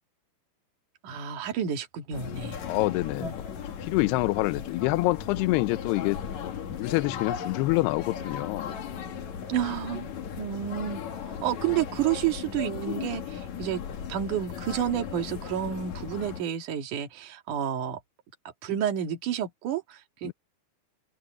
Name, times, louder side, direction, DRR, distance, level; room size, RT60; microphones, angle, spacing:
voice 1, 1.0-2.6 3.2-3.3 9.5-10.1 10.4-13.8 14.1-18.0 18.6-20.3, right 10 dB, 50° right, 3.1 m, -30 dB
sound 1, 2.1-16.4, left 7 dB, 50° left, 2.5 m, -37 dB
voice 2, 2.7-3.3 3.8-8.7 20.2-20.3, left 20 dB, 80° left, 2.5 m, -27 dB
open air
omnidirectional pair, 5.5 m